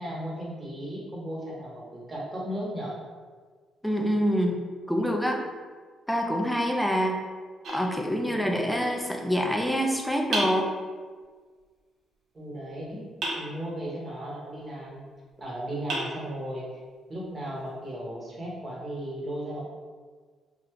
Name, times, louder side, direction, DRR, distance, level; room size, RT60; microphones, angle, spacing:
voice 1, 0.0-3.0 8.2-8.5 12.3-13.0 13.4-15.0 15.4-16.6 17.1-19.7, right 1 dB, 30° right, -4 dB, 1.3 m, -36 dB
voice 2, 3.8-4.6 4.9-5.4 6.1-7.1 7.7-10.7, equal, ahead, 1 dB, 0.6 m, -26 dB
sound 1, 7.6-8.7 10.3-11.3 13.2-14.1 15.3-15.4 15.9-16.9, right 1 dB, 70° right, 1.3 m, -34 dB
3.9 x 2.7 x 3.3 m, 1.6 s
cardioid pair, 90°, 0 cm